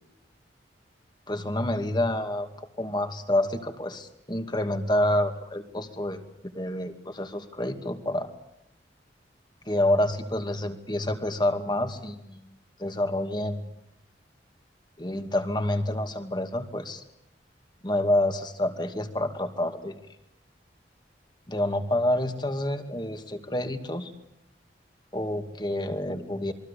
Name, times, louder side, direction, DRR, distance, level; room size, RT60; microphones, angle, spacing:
voice 1, 1.3-2.5 2.8-6.3 6.5-8.3 9.7-12.5 12.8-13.7 15.0-17.0 17.8-20.0 21.5-24.1 25.1-26.5, left 1 dB, 25° left, 7 dB, 2.3 m, -28 dB
28.0 x 23.0 x 8.5 m, 0.80 s
head